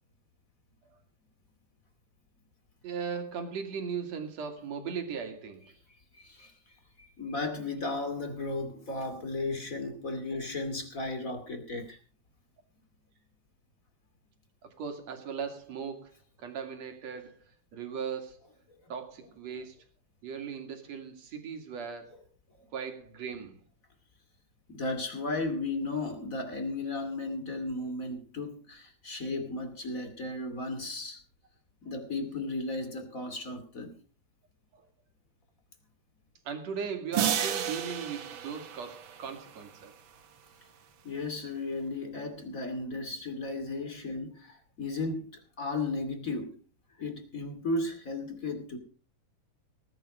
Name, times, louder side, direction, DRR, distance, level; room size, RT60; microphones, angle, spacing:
voice 1, 2.8-5.7 10.3-10.4 14.6-17.4 17.7-18.4 18.9-19.8 20.2-22.1 22.7-23.6 34.7-34.8 36.4-39.9, right 6 dB, 50° right, 3.3 m, -38 dB
voice 2, 6.2-6.5 7.0-12.0 24.7-31.2 31.8-33.9 41.0-45.3 45.6-46.5 47.0-48.8, left 2 dB, 25° left, 2.5 m, -35 dB
sound 1, 37.1-39.6, right 9 dB, 75° right, 1.1 m, -32 dB
19.0 x 10.5 x 5.0 m
omnidirectional pair, 4.0 m